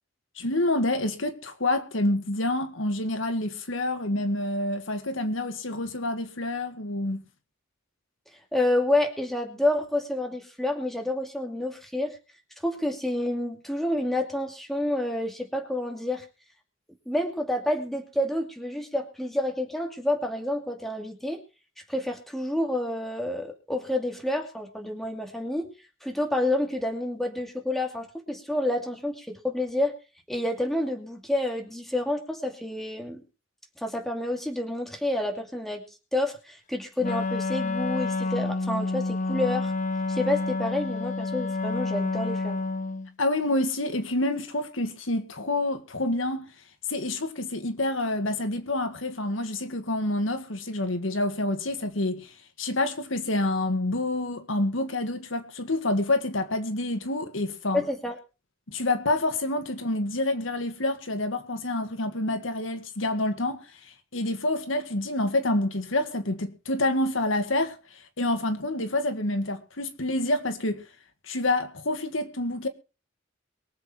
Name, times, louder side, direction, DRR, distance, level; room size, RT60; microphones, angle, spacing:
voice 1, 0.4-7.2 43.2-46.5 46.9-52.3 52.6-57.8 58.7-63.6 64.1-67.8 68.2-70.8 71.3-72.7, left 2 dB, 80° left, 1.9 m, -27 dB
voice 2, 8.5-12.2 12.6-16.3 17.1-21.4 21.9-25.7 26.0-29.9 30.3-33.2 33.8-35.8 36.1-39.7 40.1-42.6 57.7-58.2, left 1 dB, ahead, 2.5 m, -29 dB
Wind instrument woodwind instrument, 37.0-43.1, left 3 dB, 40° left, 0.8 m, -29 dB
23.5 x 7.8 x 4.4 m
head